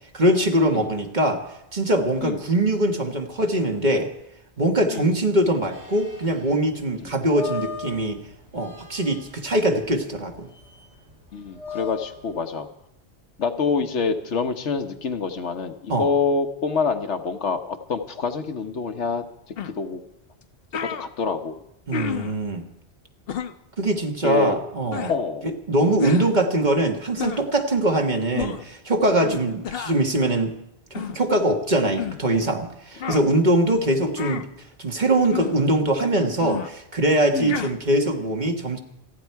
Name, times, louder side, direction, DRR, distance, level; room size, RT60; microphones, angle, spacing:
voice 1, 0.1-1.4 1.7-4.1 4.6-8.2 8.5-10.5 15.9-16.1 21.9-22.7 23.8-25.1 25.4-30.6 30.9-34.5 34.8-38.8, right 1 dB, 40° right, 3 dB, 1.7 m, -22 dB
sound 1, 5.7-12.4, left 5 dB, 75° right, 4.2 m, -39 dB
voice 2, 11.3-12.7 13.4-20.0 20.8-21.6 21.9-22.1 24.2-24.6 25.1-25.5 29.2-29.4 31.8-31.9 33.0-33.2 37.3-37.6, left 5 dB, 85° left, 7 dB, 1.4 m, -27 dB
sound 2, 19.6-19.7 20.4-20.5 20.7-21.1 21.9-22.4 23.3-23.6 24.9-25.2 26.0-26.3 27.2-27.5 28.3-28.7 29.6-30.0 30.9-31.2 32.0-32.2 33.0-33.2 34.2-34.5 35.3-35.6 36.4-36.7 37.5-37.7, left 8 dB, 60° left, 1.0 m, -30 dB
28.0 x 9.7 x 4.6 m, 0.84 s
omnidirectional pair, 1.1 m